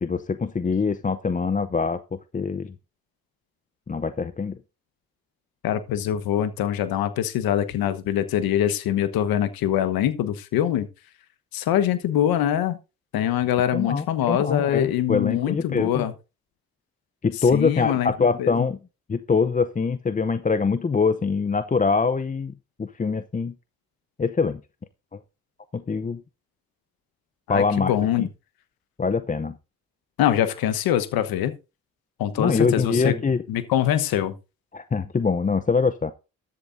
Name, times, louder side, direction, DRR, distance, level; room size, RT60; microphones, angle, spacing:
voice 1, 0.0-2.7 3.9-4.6 13.7-16.0 17.2-18.8 19.1-22.5 22.8-23.5 24.2-24.6 25.1-25.2 25.7-26.2 27.5-27.9 28.2-28.3 29.0-29.6 32.4-33.4 34.7-36.1, left 5 dB, 20° left, 0.7 m, -24 dB
voice 2, 5.6-10.9 11.5-12.8 13.1-16.1 17.5-18.1 18.4-18.6 27.5-28.3 30.2-31.6 32.2-33.1 33.5-34.3, left 11 dB, 75° left, 1.2 m, -23 dB
13.5 x 11.0 x 2.6 m
supercardioid pair, 70°, 36 cm